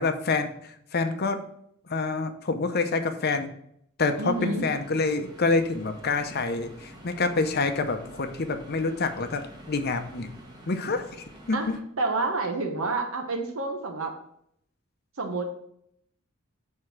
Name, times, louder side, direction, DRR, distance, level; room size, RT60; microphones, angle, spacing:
voice 1, 0.0-1.4 1.9-3.5 4.0-10.3 10.7-11.8, left 3 dB, 50° left, 8 dB, 0.7 m, -27 dB
sound 1, 4.1-11.8, right 1 dB, 20° right, 1.2 m, -48 dB
voice 2, 4.2-4.7 11.5-11.7 12.0-14.1 15.2-15.4, right 3 dB, 85° right, 3 dB, 1.0 m, -28 dB
6.6 x 3.7 x 5.9 m, 0.71 s
head